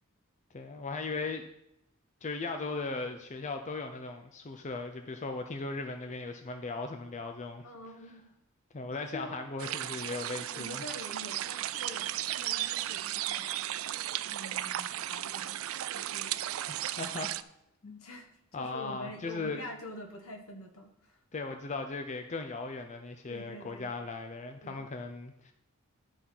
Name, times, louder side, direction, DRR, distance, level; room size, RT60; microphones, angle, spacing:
voice 1, 0.5-1.5 2.2-7.6 8.7-10.8 17.0-17.3 17.8-18.0 18.5-19.6 21.3-25.5, left 3 dB, 35° left, 6 dB, 0.6 m, -38 dB
voice 2, 7.6-8.2 9.0-9.3 10.5-13.5 14.2-15.6 15.9-16.4 18.0-18.2 18.5-21.2 23.3-23.9 24.6-24.9, equal, 75° left, 3 dB, 1.5 m, -46 dB
sound 1, 9.6-17.4, right 13 dB, 70° right, 0.4 m, -35 dB
11.5 x 4.2 x 5.9 m, 0.81 s
head